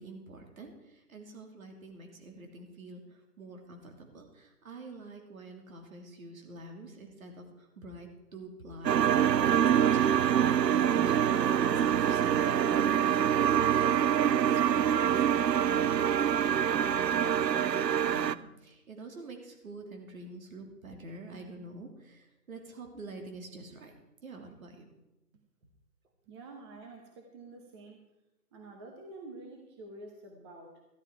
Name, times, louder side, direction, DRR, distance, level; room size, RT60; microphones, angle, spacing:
voice 1, 0.0-23.9 24.2-24.9, right 2 dB, 55° right, 3 dB, 3.1 m, -47 dB
sound 1, 8.8-18.3, right 9 dB, 90° right, 0.6 m, -25 dB
voice 2, 26.3-28.0 28.5-30.8, right 2 dB, 20° right, 2 dB, 1.0 m, -48 dB
14.0 x 11.5 x 4.7 m, 0.97 s
figure-of-eight pair, 150°, 48 cm